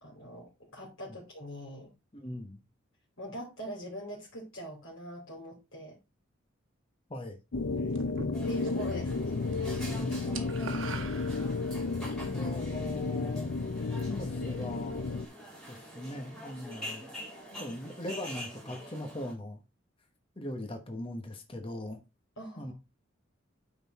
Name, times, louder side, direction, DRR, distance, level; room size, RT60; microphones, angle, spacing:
voice 1, 0.0-1.9 3.2-6.0 7.7-9.4 17.5-17.7 22.4-22.7, equal, 90° left, 3.0 m, -43 dB
voice 2, 2.1-2.6 7.1-7.4 9.8-10.5 12.3-13.5 14.1-15.1 15.7-17.1 17.6-19.6 20.4-22.0 22.6-22.7, left 1 dB, 25° left, 1.0 m, -40 dB
sound 1, 7.5-15.3, left 3 dB, 65° left, 0.5 m, -33 dB
sound 2, 7.9-8.9 9.2-9.6 9.8-11.9, right 5 dB, 75° right, 1.2 m, -43 dB
sound 3, 8.3-19.3, equal, 5° left, 3.2 m, -46 dB
9.2 x 4.1 x 4.1 m
head